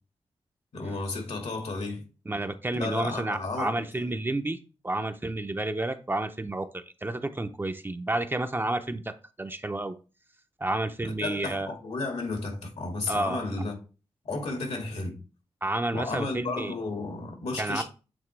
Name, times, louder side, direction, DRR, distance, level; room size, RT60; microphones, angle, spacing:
voice 1, 0.7-2.0 2.7-3.7 11.2-13.7 14.2-15.1 15.9-17.8, left 3 dB, 80° left, 2.0 m, -33 dB
voice 2, 2.3-4.6 4.8-9.1 9.4-10.0 10.6-11.7 13.1-13.4 15.6-16.7 17.6-17.8, right 2 dB, 20° right, 0.5 m, -30 dB
8.0 x 3.7 x 3.2 m
wide cardioid pair, 90°, 11 cm